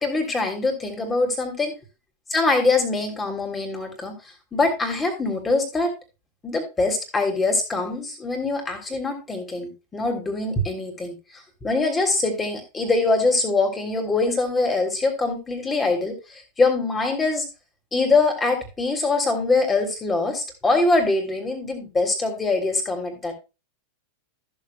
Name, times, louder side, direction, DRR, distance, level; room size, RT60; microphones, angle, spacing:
voice 1, 0.0-1.7 2.3-4.1 4.5-5.9 6.4-11.1 11.6-17.4 17.9-23.3, left 3 dB, 15° left, 4 dB, 3.3 m, -23 dB
15.0 x 7.2 x 2.3 m, 0.27 s
figure-of-eight pair, 90°, 0 cm